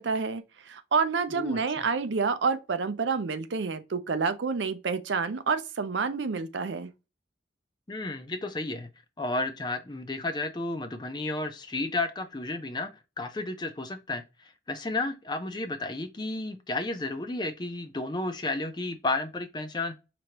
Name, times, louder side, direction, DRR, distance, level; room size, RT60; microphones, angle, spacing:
voice 1, 0.0-6.9, right 5 dB, 80° right, 0.5 m, -28 dB
voice 2, 7.9-8.9 9.2-14.2 14.7-20.0, left 2 dB, 25° left, 0.5 m, -32 dB
5.0 x 3.0 x 2.9 m
head